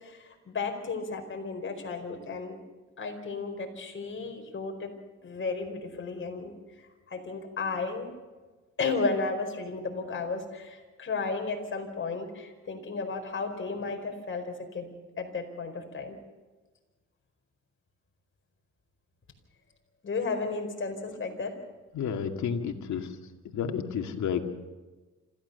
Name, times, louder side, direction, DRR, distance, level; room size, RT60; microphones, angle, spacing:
voice 1, 0.0-2.6 3.0-4.9 5.2-6.5 7.1-8.1 8.8-14.9 15.2-16.2 20.0-21.5, left 4 dB, 40° left, 3 dB, 4.7 m, -33 dB
voice 2, 21.9-23.2 23.4-24.4, left 7 dB, 70° left, 4 dB, 2.3 m, -31 dB
27.0 x 15.0 x 6.9 m, 1.3 s
cardioid pair, 90°, 30 cm